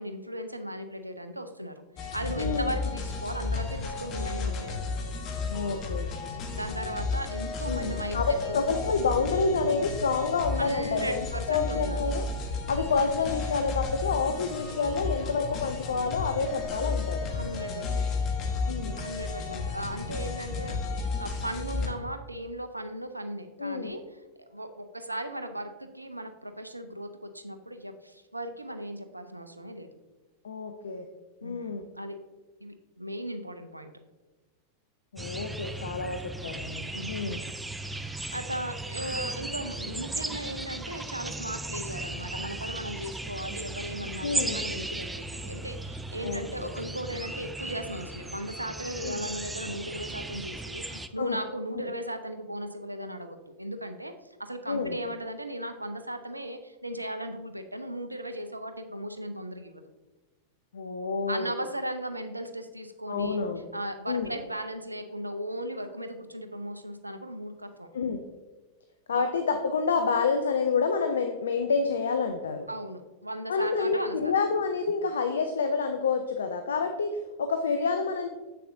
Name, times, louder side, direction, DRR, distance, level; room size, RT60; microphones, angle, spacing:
voice 1, 0.0-4.9 6.3-8.6 10.6-12.1 17.3-18.1 19.0-24.0 24.5-29.9 31.4-32.2 32.6-33.9 36.9-37.4 37.8-54.1 54.4-59.8 61.3-63.4 63.7-67.9 69.1-69.2 72.7-74.2, right 1 dB, 85° right, 8 dB, 0.5 m, -37 dB
sound 1, 2.0-21.9, left 4 dB, 35° left, 1.1 m, -33 dB
voice 2, 2.4-2.7 5.5-6.1 7.7-12.3 12.7-17.3 18.7-19.0 23.6-24.0 30.4-31.1 31.4-31.9 35.1-37.4 44.2-44.6 46.2-46.7 49.0-49.3 50.9-51.4 51.7-51.9 54.7-55.0 60.7-61.5 63.1-63.7 64.1-64.3 67.9-68.2 69.1-72.7 73.5-78.3, left 4 dB, 65° left, 7 dB, 0.5 m, -28 dB
sound 2, 35.2-51.1, right 2 dB, 5° right, 0.3 m, -36 dB
7.5 x 6.6 x 2.6 m, 1.2 s
figure-of-eight pair, 90°, 0 cm